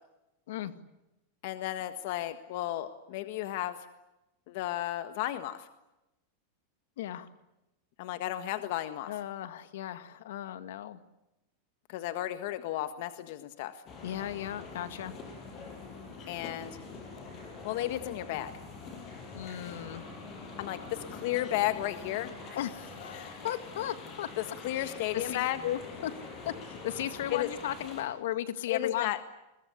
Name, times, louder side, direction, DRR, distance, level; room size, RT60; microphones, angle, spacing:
voice 1, 1.4-3.8 4.5-5.7 8.0-9.1 11.9-13.8 16.3-16.8 17.6-18.5 20.6-22.6 23.1-23.4 24.4-25.6 27.3-27.5 28.7-29.2, left 14 dB, 55° left, 10 dB, 1.5 m, -33 dB
voice 2, 7.0-7.3 9.1-11.0 14.0-15.1 19.3-20.1 22.6-24.3 24.8-26.1 26.5-29.3, left 12 dB, 75° left, 11 dB, 2.0 m, -36 dB
sound 1, 13.9-28.0, left 4 dB, 30° left, 6.8 m, -45 dB
28.5 x 22.5 x 8.4 m, 0.95 s
supercardioid pair, 150°, 0 cm